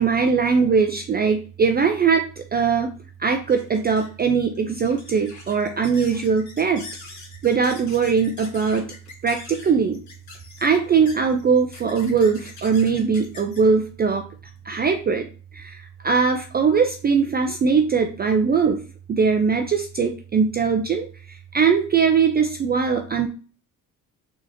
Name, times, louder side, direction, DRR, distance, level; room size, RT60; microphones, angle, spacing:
voice 1, 0.0-2.9 3.2-6.9 7.4-8.9 9.2-10.0 10.6-14.3 14.6-15.3 15.5-23.3, right 5 dB, 25° right, 5 dB, 0.4 m, -21 dB
sound 1, 2.3-15.2, left 3 dB, 50° left, 1.4 m, -45 dB
3.9 x 2.9 x 2.6 m, 0.38 s
cardioid pair, 80°, 37 cm